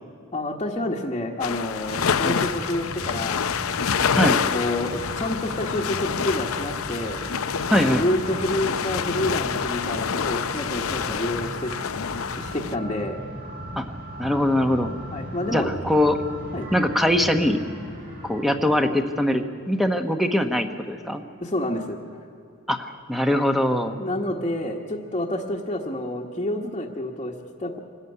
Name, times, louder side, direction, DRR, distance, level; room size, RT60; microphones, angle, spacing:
voice 1, 0.3-3.5 4.1-7.2 7.7-11.7 12.4-13.2 15.1-15.7 16.5-16.7 21.4-22.0 24.0-27.8, left 1 dB, 25° left, -4 dB, 1.3 m, -28 dB
sound 1, 1.4-12.8, left 7 dB, 70° left, 0.6 m, -27 dB
sound 2, 1.8-18.8, right 1 dB, 50° right, 4.7 m, -37 dB
voice 2, 7.7-8.0 13.8-13.9 14.2-14.9 15.5-16.2 16.7-17.6 18.2-21.2 22.7-24.0, left 1 dB, ahead, 6 dB, 1.0 m, -22 dB
24.5 x 13.5 x 9.6 m, 2.4 s
head